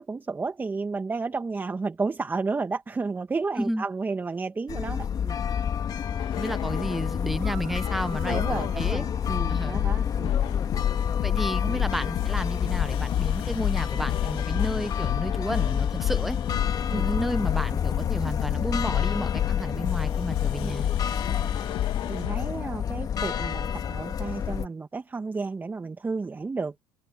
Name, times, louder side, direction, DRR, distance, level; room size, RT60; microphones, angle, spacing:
voice 1, 0.0-5.4 8.3-10.4 16.9-17.1 20.6-20.7 21.3-21.4 22.1-26.8, right 4 dB, 20° right, 1.9 m, -32 dB
sound 1, 4.7-24.7, left 8 dB, 40° left, 2.3 m, -29 dB
sound 2, 6.2-7.2 7.8-22.5 23.2-23.6, left 15 dB, 60° left, 1.9 m, -31 dB
voice 2, 6.3-9.0 9.5-9.8 10.6-10.7 11.2-16.4 16.9-20.9, equal, ahead, 1.1 m, -32 dB
sound 3, 7.4-10.7, right 22 dB, 75° right, 3.8 m, -49 dB
supercardioid pair, 85°, 9 cm